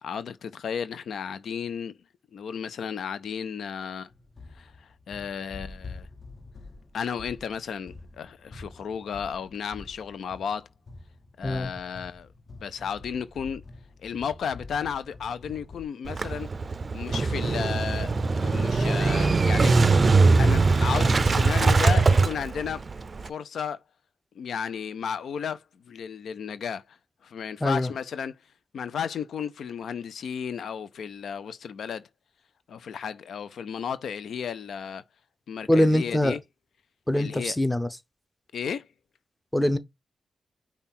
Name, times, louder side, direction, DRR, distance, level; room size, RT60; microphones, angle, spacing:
voice 1, 0.0-2.0 2.3-4.1 4.5-6.1 6.9-10.7 11.4-12.3 12.6-13.6 14.0-16.5 16.9-18.1 18.4-19.8 20.4-22.8 23.2-23.8 24.4-27.0 27.2-28.3 28.7-32.1 32.7-35.0 35.5-36.4 37.1-37.5 38.5-38.9, left 7 dB, 80° left, 0.5 m, -33 dB
sound 1, 4.1-15.9, left 3 dB, 50° left, 1.5 m, -46 dB
Motorcycle / Engine starting, 16.1-23.3, right 3 dB, 40° right, 0.4 m, -21 dB
voice 2, 27.6-27.9 35.7-36.4 37.1-37.9 39.5-39.8, left 1 dB, 5° left, 0.7 m, -23 dB
5.5 x 2.3 x 4.1 m
cardioid pair, 75°, 0 cm